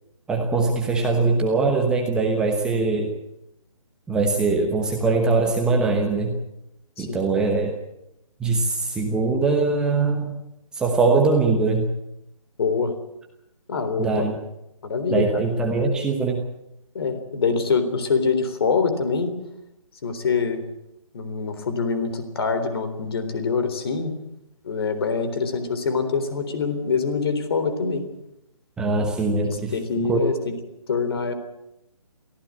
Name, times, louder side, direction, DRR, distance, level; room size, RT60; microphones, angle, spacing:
voice 1, 0.3-3.1 4.1-6.4 7.0-7.8 8.4-10.4 10.8-11.9 14.0-14.3 15.1-16.4 28.8-29.7 30.1-30.2, right 3 dB, 5° right, 1 dB, 1.1 m, -22 dB
voice 2, 12.6-12.9 13.7-14.3 14.8-15.5 16.9-19.3 20.0-20.6 21.1-24.2 24.6-28.0 29.5-30.6 30.9-31.3, left 5 dB, 45° left, 10 dB, 3.7 m, -24 dB
23.5 x 15.5 x 8.6 m, 0.85 s
hypercardioid pair, 160°, 18 cm